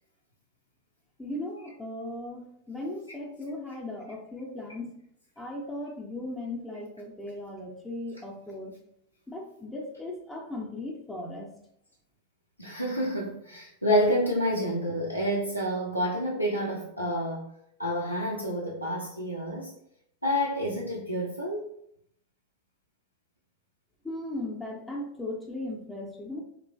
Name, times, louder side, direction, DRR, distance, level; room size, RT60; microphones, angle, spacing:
voice 1, 1.2-5.0 5.4-8.7 9.3-11.5 24.0-26.4, left 1 dB, 10° left, -2 dB, 0.5 m, -37 dB
voice 2, 12.6-17.5 17.8-19.7 20.2-21.7, equal, 90° left, -4 dB, 0.4 m, -28 dB
2.9 x 2.2 x 2.5 m, 0.72 s
figure-of-eight pair, 90°, 0 cm